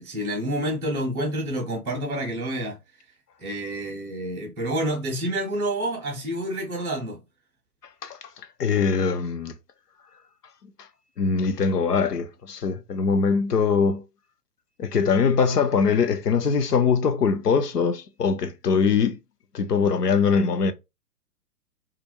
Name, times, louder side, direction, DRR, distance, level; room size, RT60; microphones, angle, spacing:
voice 1, 0.0-2.8 3.4-7.2, right 1 dB, 10° right, 0.5 m, -28 dB
voice 2, 8.6-9.5 11.2-14.0 14.8-19.2 19.5-20.7, left 5 dB, 90° left, 0.6 m, -22 dB
2.4 x 2.1 x 2.8 m
figure-of-eight pair, 115°, 46 cm